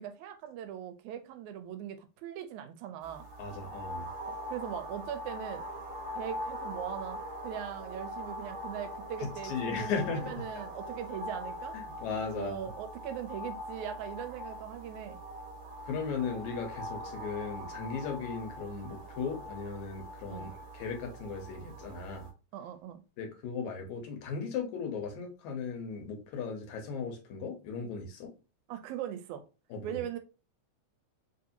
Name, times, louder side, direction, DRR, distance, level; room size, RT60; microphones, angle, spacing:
voice 1, 0.0-3.3 4.3-5.7 6.2-11.8 12.3-15.2 20.3-20.5 22.5-23.0 28.7-29.4 29.8-30.2, right 10 dB, 85° right, 8 dB, 1.9 m, -40 dB
sound 1, 3.0-22.3, equal, 55° right, 1.8 m, -42 dB
voice 2, 3.4-4.1 9.2-10.4 11.7-12.6 15.8-20.5 20.7-22.3 23.2-28.3 29.7-30.0, left 5 dB, 75° left, 2 dB, 2.3 m, -37 dB
4.8 x 2.7 x 2.7 m, 0.32 s
omnidirectional pair, 3.5 m